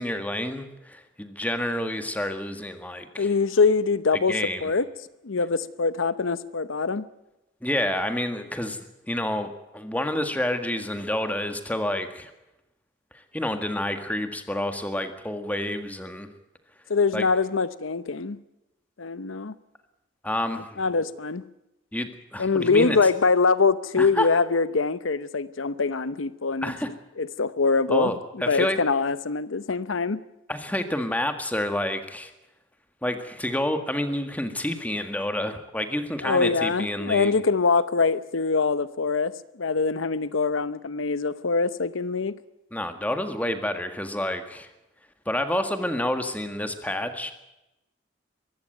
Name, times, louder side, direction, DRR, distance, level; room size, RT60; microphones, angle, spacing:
voice 1, 0.0-3.3 4.1-4.7 7.6-12.3 13.1-16.3 17.1-17.3 20.2-21.1 21.9-23.0 24.0-24.3 26.6-26.9 27.9-28.8 30.5-32.3 33.0-37.3 42.7-44.7 45.3-47.3, left 1 dB, 10° left, 8 dB, 1.8 m, -29 dB
voice 2, 3.2-4.9 5.2-7.0 16.9-18.4 19.0-19.5 20.8-21.4 22.4-26.7 27.2-28.1 28.5-30.2 36.2-39.3 39.6-42.3, left 4 dB, 85° left, 15 dB, 0.8 m, -23 dB
23.5 x 14.5 x 9.2 m, 0.94 s
head